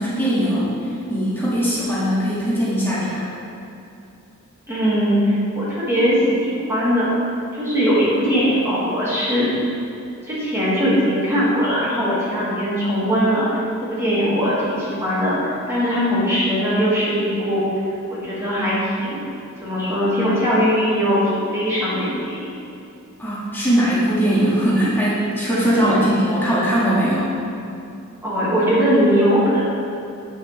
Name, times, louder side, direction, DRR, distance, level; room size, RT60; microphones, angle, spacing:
voice 1, 0.0-3.3 23.2-27.3, equal, 10° left, -9 dB, 1.8 m, -20 dB
voice 2, 4.7-7.1 7.5-9.5 10.2-17.7 18.1-19.3 19.6-22.6 25.8-25.9 28.2-29.6, equal, 10° right, -9 dB, 1.8 m, -20 dB
8.6 x 7.9 x 3.2 m, 2.7 s
head